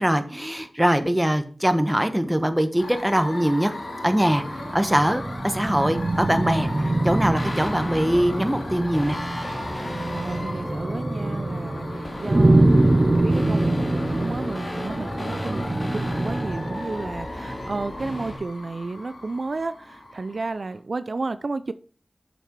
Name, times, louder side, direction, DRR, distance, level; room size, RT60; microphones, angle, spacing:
voice 1, 0.0-3.8 4.0-6.7 7.0-9.2, equal, 10° right, 1.1 m, -22 dB
sound 1, 2.8-20.8, left 1 dB, 80° left, 2.8 m, -37 dB
sound 2, 4.5-16.9, right 2 dB, 40° right, 0.8 m, -24 dB
sound 3, 6.4-18.4, left 1 dB, 30° left, 2.2 m, -35 dB
voice 2, 10.1-12.7 13.1-21.7, right 3 dB, 65° right, 0.4 m, -32 dB
7.0 x 6.0 x 4.5 m
wide cardioid pair, 50°, 0 cm